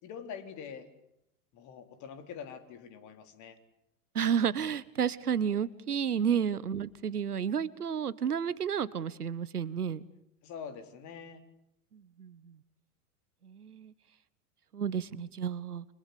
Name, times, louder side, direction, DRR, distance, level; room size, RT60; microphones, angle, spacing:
voice 1, 0.0-0.9 1.5-3.6 10.4-11.4, left 7 dB, 40° left, 8 dB, 3.7 m, -44 dB
voice 2, 4.1-10.0 11.9-12.6 13.4-13.9 14.7-15.9, right 8 dB, 85° right, 18 dB, 1.2 m, -31 dB
29.5 x 24.5 x 6.9 m, 0.79 s
figure-of-eight pair, 95°, 44 cm